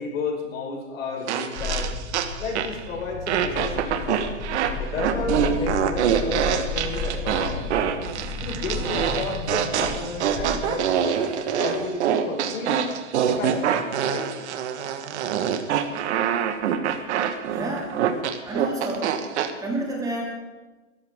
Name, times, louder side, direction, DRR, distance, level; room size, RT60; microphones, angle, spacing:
voice 1, 0.0-1.9 2.4-4.3 4.8-7.7 8.4-10.9 11.5-12.9 13.3-14.3, left 3 dB, 85° left, -1 dB, 5.7 m, -32 dB
sound 1, 1.3-2.9 3.3-19.5, right 9 dB, 60° right, 1.5 m, -25 dB
sound 2, 1.6-10.9, left 4 dB, 35° left, 1.4 m, -33 dB
voice 2, 17.5-18.0 18.5-19.2 19.6-20.2, right 2 dB, 10° right, -2 dB, 2.5 m, -29 dB
21.5 x 13.5 x 3.7 m, 1.2 s
supercardioid pair, 160°, 39 cm